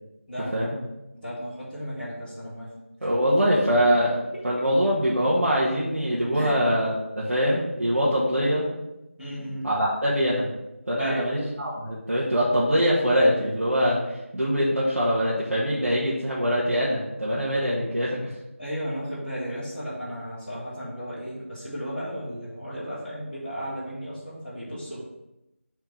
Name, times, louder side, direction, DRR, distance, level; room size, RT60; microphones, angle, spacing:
voice 1, 0.3-0.7 1.2-2.7 6.3-6.6 9.2-9.7 11.0-11.3 18.6-25.0, equal, 5° right, -21 dB, 1.3 m, -34 dB
voice 2, 3.0-4.2 4.4-8.6 9.6-10.5 10.9-14.0 14.3-18.2, equal, 75° right, -7 dB, 1.6 m, -23 dB
4.6 x 4.5 x 5.6 m, 0.93 s
figure-of-eight pair, 175°, 7 cm